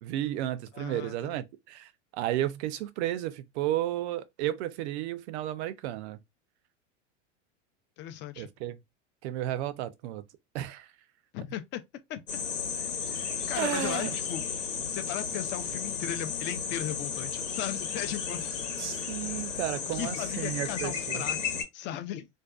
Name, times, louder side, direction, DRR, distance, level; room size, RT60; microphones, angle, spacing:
voice 1, 0.0-6.2 8.4-8.8 9.2-10.2 10.5-10.9 13.5-14.2 18.8-21.2, right 13 dB, 65° right, 0.5 m, -33 dB
voice 2, 0.7-1.4 8.0-8.5 11.3-11.8 12.1-12.4 12.8-14.4 14.9-18.4 19.0-19.1 19.9-21.4 21.7-22.3, left 11 dB, 30° left, 0.4 m, -37 dB
sound 1, 12.3-21.6, left 6 dB, 85° left, 1.1 m, -34 dB
2.5 x 2.2 x 2.3 m
hypercardioid pair, 100°, 37 cm